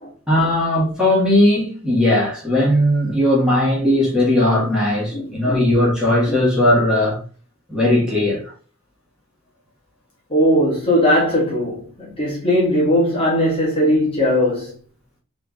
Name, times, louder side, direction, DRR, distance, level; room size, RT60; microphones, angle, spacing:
voice 1, 0.3-7.2 7.7-8.5, left 1 dB, 5° right, 1.6 m, -18 dB
voice 2, 5.1-5.7 6.3-6.4 10.3-14.7, equal, 25° left, 1.5 m, -19 dB
4.8 x 3.1 x 2.4 m
head